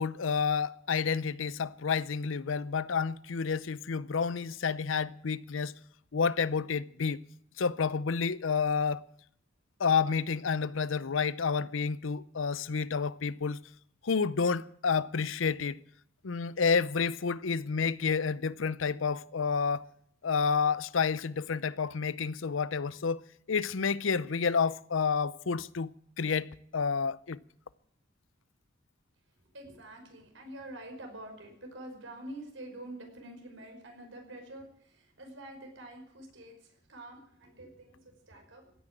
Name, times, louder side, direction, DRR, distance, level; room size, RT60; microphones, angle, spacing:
voice 1, 0.0-5.7 6.1-7.2 7.6-9.0 9.8-13.6 14.0-15.8 16.2-19.8 20.2-23.2 23.5-27.4, left 5 dB, 80° left, 0.6 m, -30 dB
voice 2, 29.5-36.6 36.9-38.7, right 1 dB, 70° right, 5.2 m, -47 dB
16.5 x 9.9 x 8.8 m
head